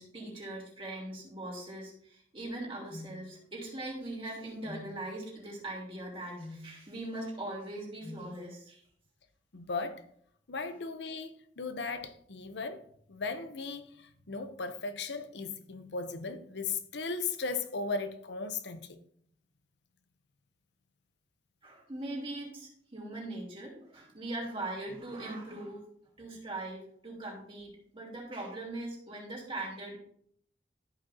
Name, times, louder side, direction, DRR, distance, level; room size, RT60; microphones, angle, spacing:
voice 1, 0.0-8.8 21.6-25.8 26.2-30.0, right 1 dB, 30° right, 3.2 m, -41 dB
sound 1, 2.9-3.2 4.6-4.9 6.4-6.7 8.0-8.3, left 2 dB, 25° left, 1.2 m, -45 dB
voice 2, 9.5-10.0 10.5-12.8 13.1-19.0, left 4 dB, 70° left, 0.7 m, -37 dB
13.5 x 5.6 x 2.8 m
head